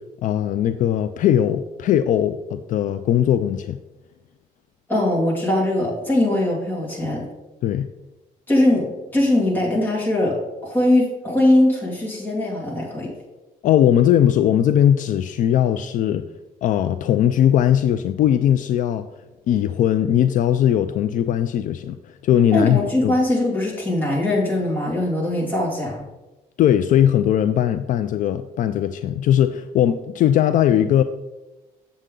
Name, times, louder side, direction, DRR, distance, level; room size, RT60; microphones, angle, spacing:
voice 1, 0.2-3.8 7.6-7.9 13.6-16.3 16.6-19.1 19.5-23.1 26.6-31.0, left 10 dB, 60° left, 10 dB, 0.4 m, -19 dB
voice 2, 4.9-7.2 8.5-8.9 9.1-10.3 10.6-13.1 22.5-26.0, left 1 dB, 10° left, -4 dB, 2.4 m, -21 dB
7.9 x 7.3 x 3.8 m, 1.1 s
cardioid pair, 150°, 15 cm